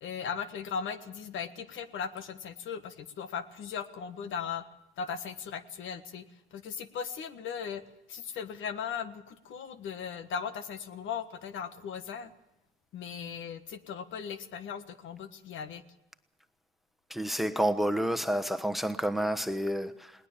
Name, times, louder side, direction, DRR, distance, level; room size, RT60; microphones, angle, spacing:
voice 1, 0.0-4.6 5.0-6.2 6.5-7.8 8.1-12.3 12.9-15.8, left 7 dB, 75° left, 1.5 m, -38 dB
voice 2, 17.1-20.1, right 1 dB, ahead, 1.1 m, -29 dB
20.0 x 19.0 x 7.3 m
cardioid pair, 90°, 20 cm